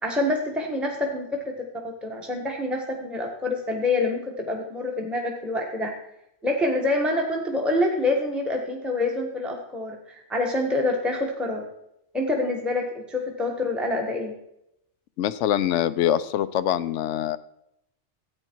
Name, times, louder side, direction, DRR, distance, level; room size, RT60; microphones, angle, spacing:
voice 1, 0.0-5.9 6.4-11.7 12.1-14.3, left 2 dB, ahead, 0 dB, 1.2 m, -26 dB
voice 2, 15.2-17.4, left 11 dB, 85° left, 15 dB, 0.9 m, -24 dB
13.5 x 8.8 x 4.5 m, 0.81 s
omnidirectional pair, 1.2 m